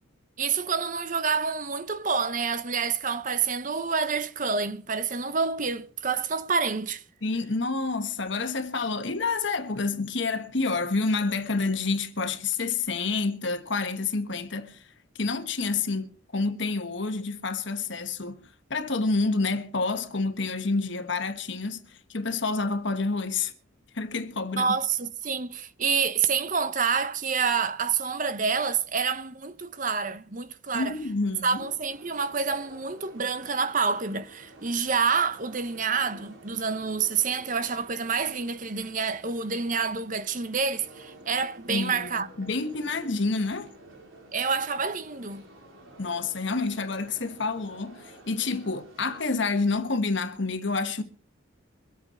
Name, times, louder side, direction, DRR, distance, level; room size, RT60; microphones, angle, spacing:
voice 1, 0.4-7.0 24.6-30.9 31.4-42.3 44.3-45.5, right 5 dB, 40° right, 0.8 m, -28 dB
voice 2, 7.2-23.5 23.9-24.7 30.7-31.7 41.7-43.7 46.0-51.0, left 3 dB, 60° left, 1.3 m, -28 dB
sound 1, 31.9-49.7, right 1 dB, 75° right, 3.8 m, -51 dB
24.0 x 8.5 x 4.3 m
head